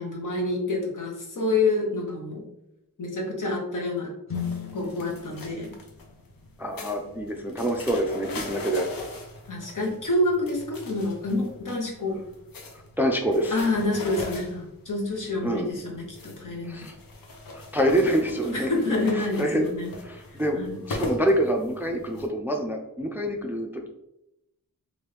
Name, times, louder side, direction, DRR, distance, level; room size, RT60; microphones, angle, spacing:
voice 1, 0.0-2.4 3.0-4.1 4.7-5.7 9.5-12.2 13.5-16.9 18.5-19.9 20.3-20.8, left 2 dB, 65° left, -1 dB, 1.0 m, -28 dB
sound 1, 4.3-22.3, left 2 dB, 80° left, 0.7 m, -40 dB
sound 2, 4.3-8.3, left 7 dB, 40° left, 0.6 m, -39 dB
voice 2, 6.6-8.9 13.0-13.6 15.4-15.7 16.6-17.0 17.5-18.7 19.1-19.7 20.0-20.6 20.9-23.9, right 1 dB, 5° right, 3 dB, 0.3 m, -26 dB
3.1 x 2.5 x 3.2 m, 0.84 s
wide cardioid pair, 85°, 34 cm